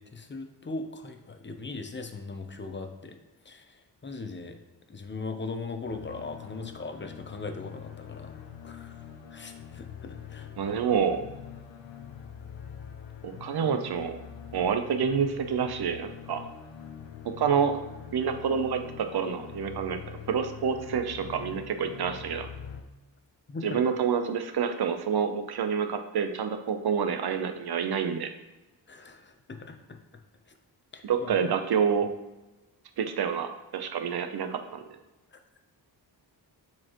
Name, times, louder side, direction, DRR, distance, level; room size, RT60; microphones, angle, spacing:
voice 1, 0.0-3.2 3.4-4.6 4.9-9.0 9.3-10.8 23.5-23.8 28.9-30.0 30.5-30.6 30.9-31.3 35.3-35.4, left 3 dB, 25° left, 6 dB, 0.7 m, -39 dB
sound 1, 5.8-22.8, left 8 dB, 85° left, 0.8 m, -44 dB
voice 2, 10.6-11.2 13.2-14.2 14.5-16.4 17.4-17.8 18.1-22.5 23.6-28.3 31.0-32.1 33.0-34.8, right 7 dB, 60° right, 7 dB, 0.7 m, -28 dB
7.4 x 4.3 x 3.0 m, 1.1 s
wide cardioid pair, 100°, 44 cm